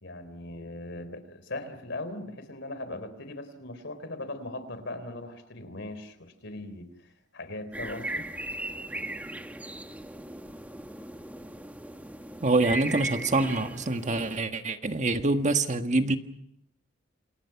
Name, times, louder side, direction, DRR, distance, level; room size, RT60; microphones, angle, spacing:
voice 1, 0.0-8.3, left 2 dB, 65° left, 11 dB, 3.9 m, -39 dB
sound 1, 7.7-14.4, right 1 dB, 10° right, 1.2 m, -38 dB
voice 2, 12.4-16.2, right 2 dB, 40° right, 7 dB, 1.6 m, -25 dB
28.5 x 28.0 x 5.9 m, 0.76 s
head